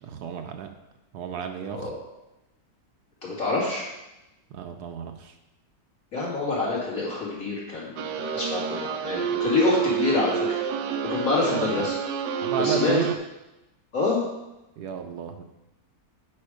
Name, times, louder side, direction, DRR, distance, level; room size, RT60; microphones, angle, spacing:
voice 1, 0.0-0.7 1.1-1.9 4.5-5.3 11.5-11.8 12.4-13.1 14.8-15.4, right 7 dB, 70° right, 6 dB, 1.2 m, -32 dB
voice 2, 3.2-3.9 6.1-10.5 11.0-12.0 12.6-12.9 13.9-14.3, left 3 dB, 50° left, -6 dB, 3.0 m, -26 dB
sound 1, 8.0-13.2, right 8 dB, 90° right, 1.4 m, -28 dB
8.8 x 5.3 x 4.9 m, 0.96 s
omnidirectional pair, 1.9 m